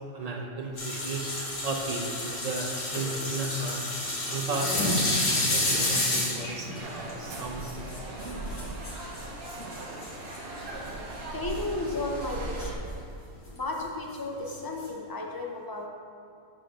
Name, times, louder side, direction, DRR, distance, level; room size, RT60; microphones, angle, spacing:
voice 1, 0.1-3.8 4.3-7.9, right 2 dB, 45° right, 2 dB, 0.5 m, -34 dB
sound 1, 0.8-10.6 11.5-11.6 12.0-12.2 12.6-12.7 13.6-13.7 14.5-14.9, left 1 dB, 85° left, 1.7 m, -30 dB
sound 2, 6.8-12.8, right 2 dB, 60° right, 1.0 m, -38 dB
voice 2, 10.7-12.9 13.5-15.9, left 2 dB, 30° left, 0 dB, 0.4 m, -34 dB
6.5 x 3.8 x 5.4 m, 2.4 s
omnidirectional pair, 1.2 m